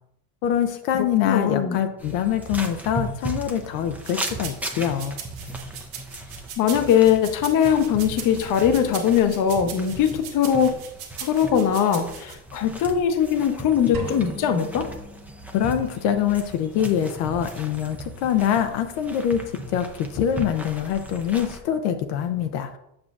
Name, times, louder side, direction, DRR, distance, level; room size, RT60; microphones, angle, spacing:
voice 1, 0.4-5.2 15.5-19.4 19.7-22.8, left 9 dB, 75° left, 8 dB, 0.7 m, -24 dB
voice 2, 0.9-1.8 6.6-10.7 11.2-14.9, left 8 dB, 45° left, 8 dB, 0.8 m, -21 dB
sound 1, 2.0-21.6, right 1 dB, 5° right, 0.5 m, -37 dB
sound 2, 4.0-12.3, right 8 dB, 85° right, 1.5 m, -39 dB
sound 3, 13.9-16.0, right 3 dB, 45° right, 1.5 m, -37 dB
7.4 x 6.2 x 2.4 m, 0.81 s
supercardioid pair, 115°, 45 cm